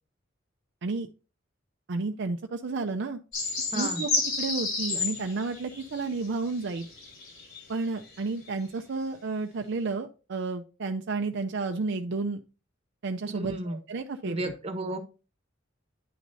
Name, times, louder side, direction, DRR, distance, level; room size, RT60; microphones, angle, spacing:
voice 1, 1.9-3.2 3.7-4.1 4.4-6.9 7.7-12.4 13.0-14.5, right 3 dB, 60° right, 5 dB, 0.5 m, -31 dB
sound 1, 3.3-7.6 8.1-8.2, left 3 dB, 70° left, 4.4 m, -31 dB
voice 2, 3.7-4.0 13.3-13.8 14.2-15.0, right 2 dB, 30° right, 6 dB, 1.3 m, -33 dB
9.7 x 6.2 x 2.6 m, 0.33 s
head